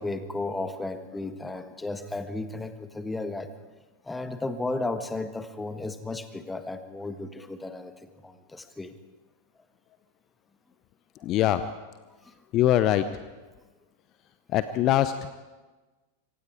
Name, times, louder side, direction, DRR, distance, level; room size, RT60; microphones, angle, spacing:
voice 1, 0.0-3.5 4.0-8.9 12.2-12.4 14.5-14.6, left 2 dB, 10° left, 9 dB, 1.6 m, -34 dB
voice 2, 11.2-11.6 12.5-13.0 14.5-15.1, left 13 dB, 35° left, 13 dB, 0.8 m, -22 dB
26.0 x 24.5 x 4.9 m, 1.2 s
figure-of-eight pair, 90°, 0 cm